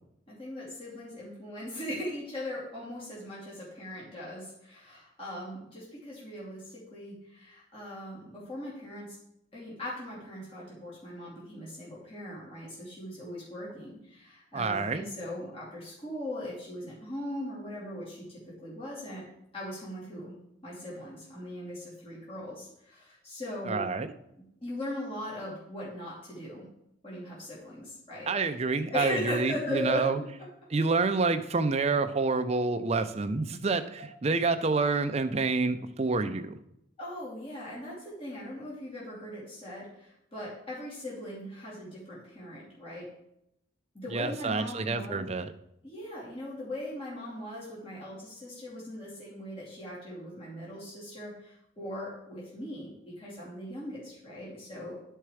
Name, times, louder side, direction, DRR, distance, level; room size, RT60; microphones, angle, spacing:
voice 1, 0.3-9.1 9.5-19.2 19.5-20.3 20.6-23.9 24.6-26.7 27.0-28.3 28.9-30.3 33.6-33.8 37.0-43.1 43.9-45.3 45.8-55.2, left 1 dB, 30° left, -7 dB, 2.8 m, -39 dB
voice 2, 14.5-15.0 23.7-24.1 28.3-30.2 30.7-36.5 44.1-45.5, right 3 dB, 35° right, 9 dB, 0.5 m, -28 dB
10.5 x 4.5 x 4.8 m, 0.80 s
head